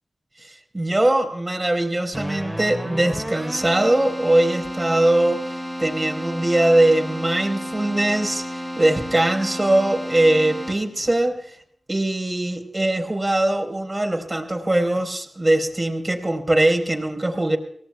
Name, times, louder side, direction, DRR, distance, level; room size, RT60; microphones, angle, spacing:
voice 1, 0.4-11.4 11.9-17.6, right 1 dB, 30° right, 4 dB, 4.0 m, -21 dB
Keyboard (musical), 2.1-11.1, equal, 5° right, 4.7 m, -32 dB
24.0 x 18.0 x 2.3 m, 0.64 s
cardioid pair, 45°, 0 cm